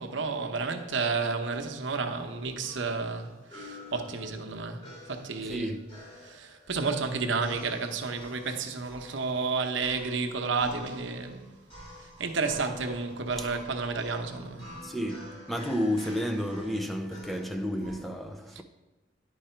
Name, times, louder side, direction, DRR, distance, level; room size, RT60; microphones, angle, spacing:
voice 1, 0.0-5.7 6.2-11.5 12.0-14.7, right 4 dB, 80° right, 0.8 m, -31 dB
sound 1, 2.0-18.1, left 1 dB, 30° left, 3.0 m, -49 dB
voice 2, 5.4-6.0 13.4-13.5 14.8-18.6, equal, ahead, 0.4 m, -32 dB
10.0 x 4.7 x 4.4 m
head